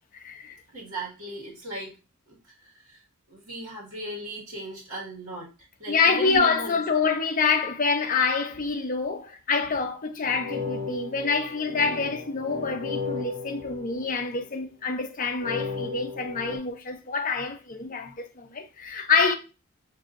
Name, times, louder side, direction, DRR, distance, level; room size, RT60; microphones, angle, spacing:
voice 1, 0.1-0.6 5.9-19.3, left 4 dB, 40° left, 0.5 m, -26 dB
voice 2, 0.7-1.9 2.3-6.8, right 2 dB, 65° right, 1.5 m, -37 dB
sound 1, 10.2-14.5 15.4-16.6, left 5 dB, 45° right, 1.5 m, -35 dB
6.0 x 2.7 x 2.4 m
head